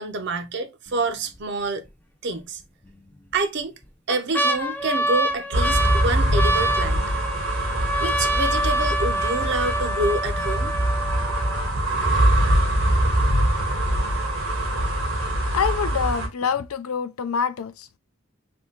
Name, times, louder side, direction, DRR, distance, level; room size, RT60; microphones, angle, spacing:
voice 1, 0.0-1.8 2.2-2.6 3.3-3.7 4.1-7.0 8.0-10.7, right 2 dB, 55° right, 0.5 m, -27 dB
sound 1, 0.9-1.4 1.8-1.9 2.9-3.4 3.8-11.8 12.5-12.6 12.8-13.3 13.7-13.8, right 1 dB, 10° left, 0.3 m, -27 dB
sound 2, 5.5-16.3, right 1 dB, 85° right, 1.3 m, -23 dB
voice 2, 15.5-18.0, left 6 dB, 90° left, 0.4 m, -26 dB
3.4 x 2.7 x 2.8 m
head